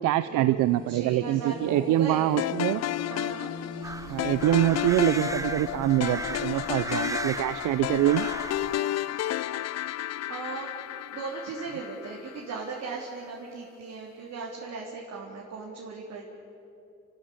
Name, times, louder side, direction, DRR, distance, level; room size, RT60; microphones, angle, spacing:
voice 1, 0.0-2.8 4.1-8.3, right 14 dB, 85° right, 14 dB, 0.6 m, -25 dB
sound 1, 0.6-7.2, left 2 dB, 15° left, 4.8 m, -44 dB
voice 2, 0.9-2.3 3.1-3.5 10.3-10.7 11.1-16.2, right 4 dB, 65° right, -3 dB, 3.6 m, -37 dB
sound 2, 2.4-12.6, left 13 dB, 60° left, 0.5 m, -32 dB
sound 3, 3.8-8.8, right 3 dB, 10° right, 0.5 m, -37 dB
30.0 x 14.0 x 8.6 m, 2.7 s
cardioid pair, 90°, 30 cm